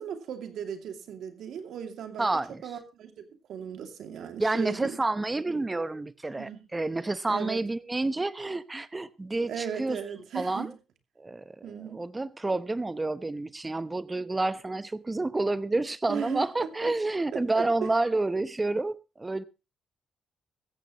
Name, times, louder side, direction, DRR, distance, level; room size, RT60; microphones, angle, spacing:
voice 1, 0.0-5.0 6.3-6.6 7.3-7.6 9.5-10.7 11.6-12.0 16.1-16.9 17.3-17.9, right 8 dB, 70° right, 2.5 m, -37 dB
voice 2, 2.2-2.6 4.4-10.0 10.3-10.7 11.2-19.4, right 2 dB, 20° right, 0.9 m, -29 dB
16.0 x 14.0 x 3.1 m
cardioid pair, 90°, 0 cm